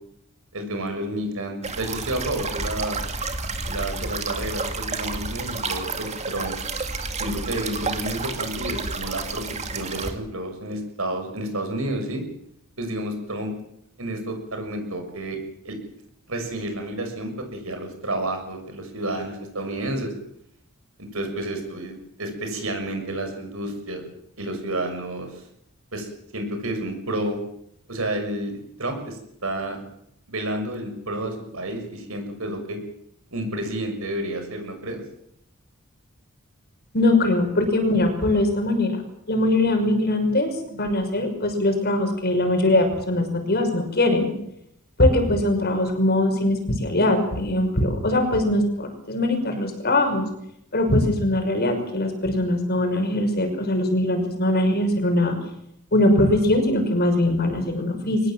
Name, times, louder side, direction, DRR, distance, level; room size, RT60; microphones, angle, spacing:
voice 1, 0.5-3.0 3.6-6.5 7.1-12.2 12.8-13.5 14.0-15.4 15.6-15.8 16.3-20.1 21.1-24.0 24.4-25.4 25.9-27.4 27.9-28.5 28.8-29.8 30.3-32.8 33.3-35.0, right 1 dB, 65° right, 5 dB, 6.6 m, -30 dB
sound 1, 1.6-10.1, right 3 dB, 30° right, 2.3 m, -30 dB
voice 2, 36.9-39.0 39.3-44.3 45.0-50.3 50.7-55.3 55.9-58.2, left 1 dB, 45° left, 5 dB, 6.0 m, -21 dB
23.5 x 20.0 x 7.7 m, 0.75 s
head